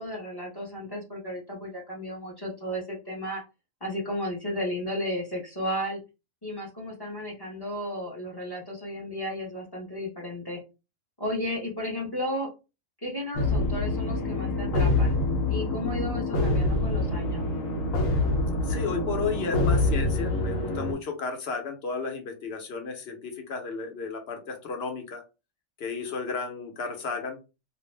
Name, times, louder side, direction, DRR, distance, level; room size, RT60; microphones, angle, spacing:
voice 1, 0.0-3.4 3.8-6.0 6.4-10.6 11.2-12.5 13.0-15.2 15.5-17.5, left 1 dB, 20° left, -3 dB, 0.7 m, -34 dB
sound 1, 13.4-20.9, left 2 dB, 85° left, 1.0 m, -26 dB
voice 2, 18.6-25.2 25.8-27.4, left 4 dB, 60° left, 4 dB, 0.9 m, -33 dB
2.4 x 2.1 x 3.1 m, 0.29 s
omnidirectional pair, 1.3 m